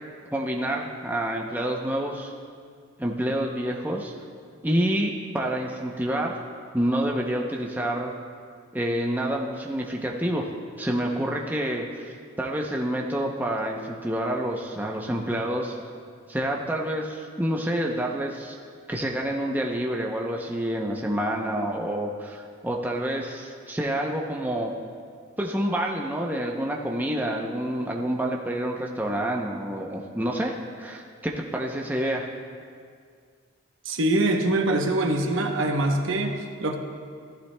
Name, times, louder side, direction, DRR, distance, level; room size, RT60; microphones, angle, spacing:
voice 1, 0.3-2.3 3.0-4.1 4.6-6.4 6.7-8.1 8.7-10.5 10.8-12.1 12.4-15.8 16.3-18.6 18.9-24.7 25.4-32.2, right 1 dB, 10° right, 0 dB, 0.6 m, -28 dB
voice 2, 33.8-36.8, right 1 dB, 70° right, 3 dB, 0.8 m, -24 dB
15.0 x 11.5 x 2.2 m, 2.1 s
head